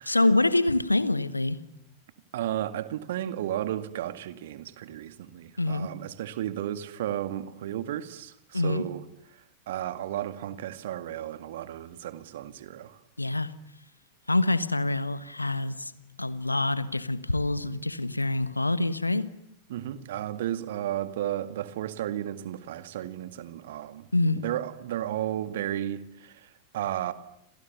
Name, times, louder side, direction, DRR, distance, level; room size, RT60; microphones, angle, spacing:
voice 1, 0.1-1.6 5.6-5.9 8.5-8.9 13.2-13.5 14.3-15.9 16.2-19.3 24.1-24.4, left 2 dB, 85° left, 1.3 m, -26 dB
voice 2, 2.3-9.1 9.3-13.0 19.7-24.1 24.3-27.1, right 12 dB, 55° right, 2.0 m, -33 dB
30.0 x 27.0 x 7.0 m
figure-of-eight pair, 90°, 0 cm